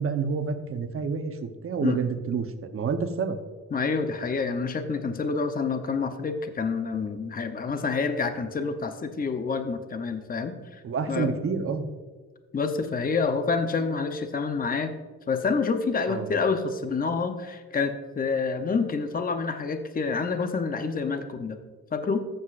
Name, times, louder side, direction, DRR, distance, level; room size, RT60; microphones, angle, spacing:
voice 1, 0.0-2.5 2.7-3.4 10.8-11.9 16.1-16.3, right 5 dB, 45° right, 7 dB, 0.9 m, -28 dB
voice 2, 3.7-10.8 11.1-11.3 12.5-14.9 15.3-21.6 21.9-22.3, left 4 dB, 25° left, 7 dB, 0.7 m, -28 dB
14.0 x 7.8 x 2.5 m, 1.4 s
cardioid pair, 105°, 32 cm